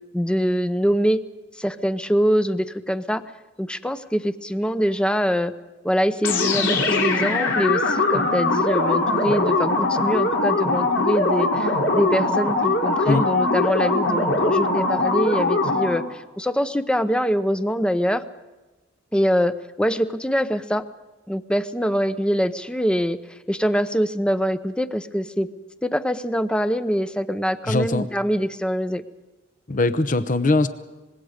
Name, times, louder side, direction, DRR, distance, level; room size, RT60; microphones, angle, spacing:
voice 1, 0.1-1.2 1.6-3.2 3.6-5.5 5.8-18.2 19.1-19.5 19.8-20.8 21.3-23.2 23.5-25.5 25.8-29.0, equal, 5° left, 11 dB, 0.8 m, -24 dB
sound 1, 6.2-16.1, left 3 dB, 70° left, 3.7 m, -21 dB
voice 2, 27.7-28.1 29.7-30.7, left 2 dB, 45° left, 11 dB, 0.9 m, -21 dB
25.5 x 21.0 x 5.1 m, 1.1 s
head